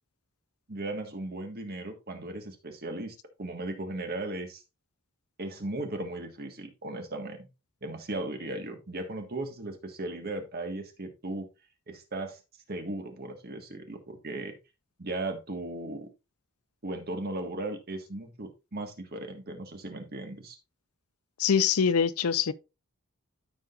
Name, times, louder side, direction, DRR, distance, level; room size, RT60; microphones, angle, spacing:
voice 1, 0.7-4.6 5.4-7.5 7.8-11.5 11.9-12.4 12.7-14.6 15.0-16.1 16.8-20.6, right 2 dB, 45° right, 1.5 m, -37 dB
voice 2, 21.4-22.5, left 7 dB, 75° left, 0.5 m, -24 dB
13.5 x 5.0 x 2.4 m
head